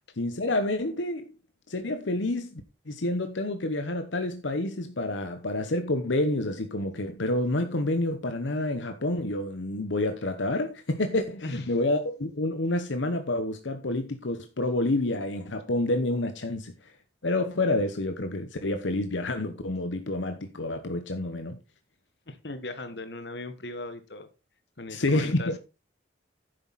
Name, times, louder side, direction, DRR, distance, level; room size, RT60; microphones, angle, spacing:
voice 1, 0.2-1.3 1.7-16.7 17.2-21.6 24.9-25.6, left 2 dB, 90° left, 1.0 m, -28 dB
voice 2, 22.3-24.3 24.8-25.5, left 2 dB, 65° left, 1.4 m, -38 dB
10.5 x 7.9 x 4.1 m
head